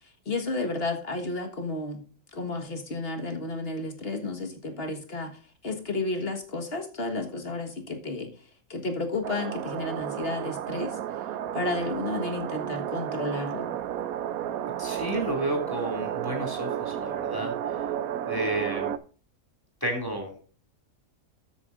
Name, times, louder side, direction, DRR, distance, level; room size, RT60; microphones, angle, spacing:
voice 1, 0.3-2.0 2.3-8.3 8.7-11.0 11.5-13.7, left 2 dB, 45° left, 4 dB, 1.7 m, -32 dB
sound 1, 9.2-19.0, right 10 dB, 85° right, 1.1 m, -32 dB
voice 2, 14.8-17.8 18.3-18.9 19.8-20.4, right 1 dB, 15° left, 2 dB, 2.5 m, -32 dB
12.5 x 8.5 x 2.5 m, 0.39 s
omnidirectional pair, 1.4 m